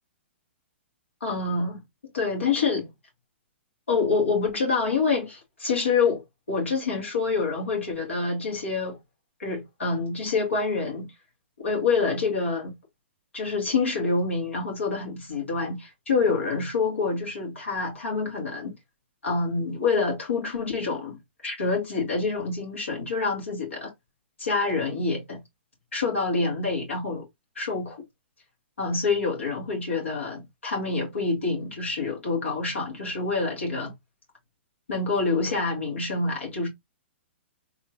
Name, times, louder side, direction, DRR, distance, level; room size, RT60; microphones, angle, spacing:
voice 1, 1.2-1.8 2.1-2.9 3.9-6.2 6.5-9.0 9.4-11.1 11.6-12.7 13.3-18.7 19.2-21.2 21.4-23.9 24.4-25.4 25.9-27.2 27.6-28.0 28.8-33.9 34.9-36.7, left 4 dB, 90° left, 2.1 m, -26 dB
3.5 x 3.0 x 2.4 m
hypercardioid pair, 125°, 7 cm